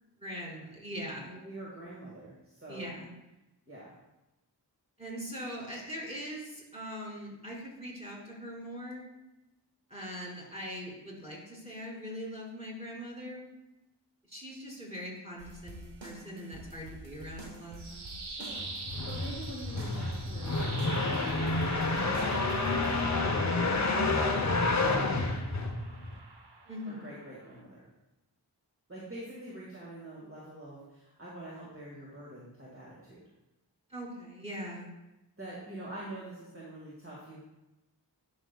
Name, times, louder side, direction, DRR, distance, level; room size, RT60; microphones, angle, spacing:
voice 1, 0.2-1.3 2.7-3.2 5.0-9.0 9.9-13.4 14.3-18.2 26.7-27.1 33.9-34.9, equal, 15° right, -3 dB, 2.5 m, -41 dB
voice 2, 1.3-2.9 3.7-3.9 18.3-23.7 24.5-25.7 26.9-27.9 28.9-33.3 35.4-37.4, right 1 dB, 30° right, -6 dB, 1.8 m, -46 dB
sound 1, 15.4-23.0, right 1 dB, 85° right, 1.2 m, -48 dB
sound 2, 17.5-27.6, right 3 dB, 65° right, 0.8 m, -44 dB
sound 3, 18.6-26.2, left 3 dB, 40° left, 0.7 m, -29 dB
11.5 x 5.3 x 2.2 m, 0.98 s
wide cardioid pair, 55°, 43 cm